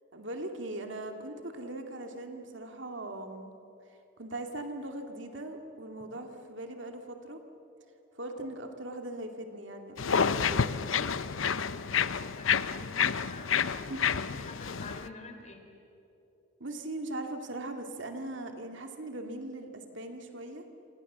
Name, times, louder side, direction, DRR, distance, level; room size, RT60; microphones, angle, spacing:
voice 1, 0.1-3.5 4.2-7.4 8.1-10.8 13.9-14.0 16.6-20.6, right 1 dB, 65° right, 4 dB, 2.4 m, -40 dB
sound 1, 10.0-15.1, left 7 dB, 80° left, 0.7 m, -29 dB
voice 2, 12.2-13.7 14.2-15.7, left 3 dB, 35° left, 5 dB, 3.5 m, -48 dB
27.5 x 27.5 x 7.4 m, 2.9 s
head